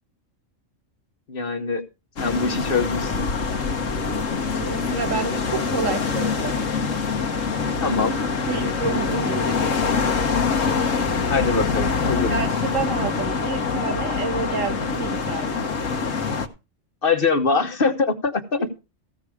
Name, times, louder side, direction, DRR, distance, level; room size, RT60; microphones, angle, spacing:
voice 1, 1.3-1.8 2.2-3.3 7.8-8.2 11.3-12.4 17.0-18.6, left 4 dB, 45° left, 1.2 m, -23 dB
sound 1, 2.2-16.5, left 5 dB, 75° left, 1.4 m, -24 dB
voice 2, 4.5-6.6 8.5-10.1 12.3-15.7, right 5 dB, 75° right, 1.8 m, -29 dB
15.0 x 6.5 x 4.8 m
omnidirectional pair, 1.3 m